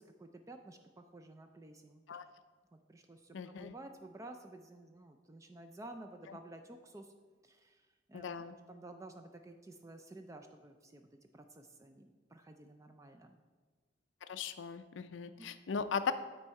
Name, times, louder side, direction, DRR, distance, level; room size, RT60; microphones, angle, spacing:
voice 1, 0.0-2.0 2.7-7.1 7.4-11.1 11.3-13.4 15.4-15.5, right 2 dB, 15° right, 6 dB, 0.3 m, -53 dB
voice 2, 3.3-3.7 8.1-8.6 14.3-16.1, left 6 dB, 75° left, 11 dB, 0.4 m, -38 dB
9.0 x 4.3 x 4.7 m, 1.4 s
head